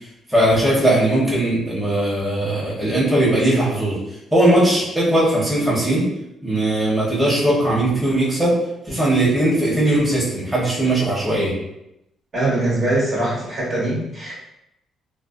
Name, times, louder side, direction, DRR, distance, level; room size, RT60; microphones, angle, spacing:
voice 1, 0.3-4.0 4.3-6.1 6.4-8.6 8.8-11.5, right 1 dB, 5° right, -8 dB, 0.9 m, -19 dB
voice 2, 12.3-14.3, right 1 dB, 50° right, -6 dB, 1.1 m, -22 dB
2.5 x 2.1 x 2.4 m, 0.84 s
cardioid pair, 90°, 0 cm